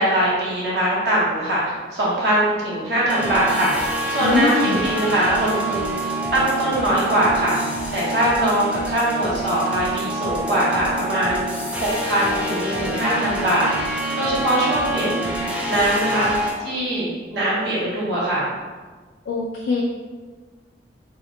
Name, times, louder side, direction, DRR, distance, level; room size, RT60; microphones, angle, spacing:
voice 1, 0.0-7.6 7.9-15.3 15.7-16.3 16.6-18.5, right 1 dB, 80° right, -7 dB, 0.8 m, -22 dB
sound 1, 3.1-16.5, right 1 dB, 5° right, 0.3 m, -27 dB
voice 2, 4.2-4.8 19.3-19.8, left 3 dB, 75° left, -2 dB, 0.3 m, -21 dB
3.1 x 2.8 x 2.5 m, 1.4 s
head